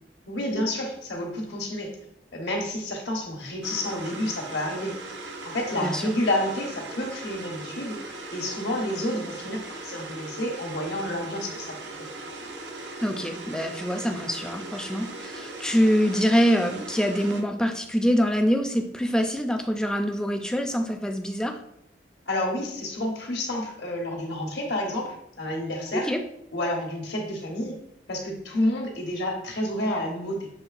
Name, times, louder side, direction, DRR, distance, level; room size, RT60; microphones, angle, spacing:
voice 1, 0.3-1.9 2.3-5.0 5.4-8.0 8.3-11.7 22.3-26.1 26.5-27.8 28.1-30.5, left 1 dB, 80° left, 1 dB, 1.1 m, -29 dB
sound 1, 3.6-17.4, right 2 dB, 85° right, 0.7 m, -39 dB
voice 2, 5.8-6.1 13.0-21.6 25.9-26.2, equal, 5° left, 4 dB, 0.3 m, -25 dB
6.8 x 3.2 x 2.4 m, 0.77 s
head